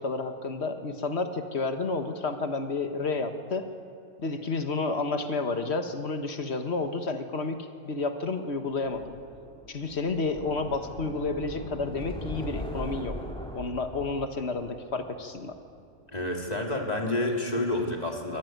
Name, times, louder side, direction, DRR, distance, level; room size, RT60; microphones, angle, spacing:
voice 1, 0.0-3.6 4.2-9.2 9.7-13.2 13.5-15.6, left 3 dB, 60° left, 7 dB, 1.7 m, -30 dB
sound 1, 9.0-15.9, left 1 dB, 5° left, 2.7 m, -40 dB
voice 2, 16.1-18.4, left 1 dB, 30° left, 1 dB, 2.9 m, -29 dB
24.0 x 15.5 x 9.4 m, 2.5 s
omnidirectional pair, 1.3 m